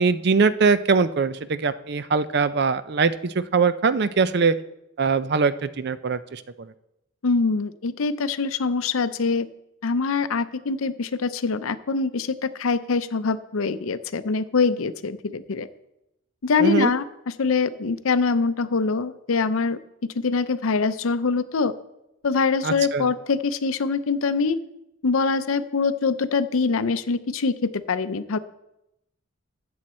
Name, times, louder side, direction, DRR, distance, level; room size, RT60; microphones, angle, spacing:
voice 1, 0.0-4.5 5.0-6.7 16.6-16.9 22.6-23.1, right 4 dB, 50° right, 14 dB, 0.5 m, -22 dB
voice 2, 7.2-9.5 9.8-15.7 16.4-17.1 17.4-19.8 20.2-21.7 22.2-24.6 25.0-28.4, left 4 dB, 80° left, 13 dB, 0.6 m, -24 dB
13.5 x 7.8 x 4.3 m, 0.87 s
head